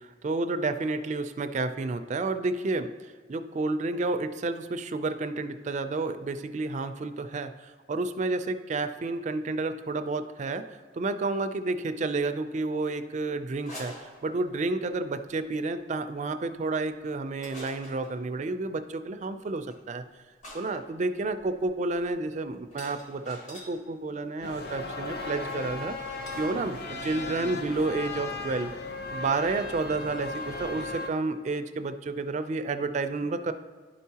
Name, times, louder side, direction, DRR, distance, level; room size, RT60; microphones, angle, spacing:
voice 1, 0.0-10.7 10.9-20.0 20.5-28.7 29.1-33.5, right 3 dB, 40° right, 9 dB, 0.4 m, -30 dB
sound 1, 13.5-14.8 15.5-15.8 17.4-18.2 19.7-19.8 20.4-23.8 24.7-25.0 26.3-26.5 26.7-26.8 27.1-27.5, equal, 40° left, 1.7 m, -47 dB
sound 2, 24.4-31.1, left 3 dB, 55° left, 0.6 m, -36 dB
11.5 x 4.6 x 2.8 m, 1.5 s
head